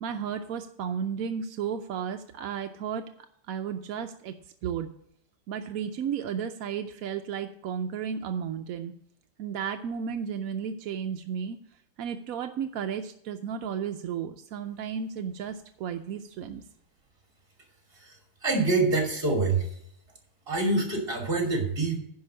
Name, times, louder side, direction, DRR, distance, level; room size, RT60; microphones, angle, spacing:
voice 1, 0.0-3.1 3.5-4.3 4.6-4.9 5.5-8.9 9.4-11.6 12.0-16.6, right 7 dB, 70° right, 6 dB, 0.8 m, -33 dB
voice 2, 18.4-19.7 20.5-22.0, right 3 dB, 30° right, 1 dB, 3.0 m, -25 dB
10.5 x 5.2 x 7.4 m, 0.70 s
omnidirectional pair, 2.1 m